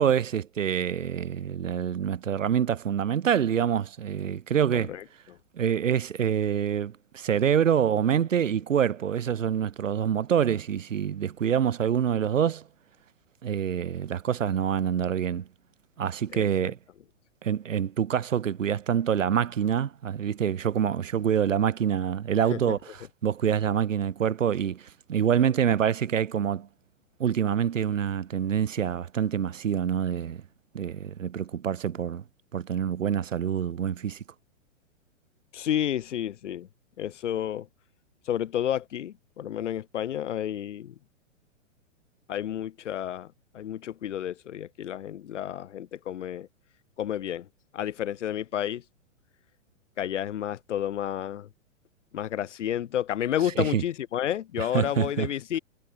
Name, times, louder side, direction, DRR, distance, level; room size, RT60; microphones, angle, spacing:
voice 1, 0.0-4.9 5.5-12.6 13.4-15.5 16.0-16.8 17.4-22.9 23.2-26.7 27.2-30.4 30.7-32.2 32.5-34.2 53.6-53.8 54.7-55.3, right 8 dB, 75° right, 7.2 m, -26 dB
voice 2, 4.7-5.4 16.3-16.7 22.5-22.8 35.5-36.7 37.0-37.7 38.3-41.0 42.3-46.5 47.0-47.5 47.7-48.8 50.0-51.5 52.1-55.6, left 10 dB, 65° left, 6.9 m, -31 dB
hypercardioid pair, 130°, 38 cm